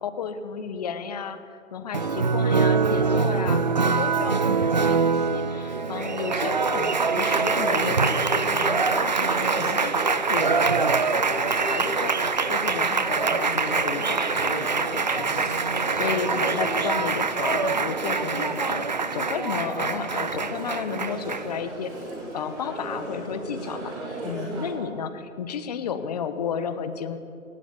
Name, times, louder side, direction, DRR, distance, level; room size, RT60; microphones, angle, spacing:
voice 1, 0.0-15.5 15.8-21.9 22.3-23.9 24.2-27.2, left 6 dB, 30° left, 10 dB, 1.2 m, -33 dB
Applause, 1.9-21.6, right 4 dB, 35° right, 0.5 m, -24 dB
sound 1, 5.6-24.7, right 1 dB, 10° right, 5.8 m, -35 dB
19.5 x 17.5 x 8.4 m, 2.5 s
figure-of-eight pair, 145°, 43 cm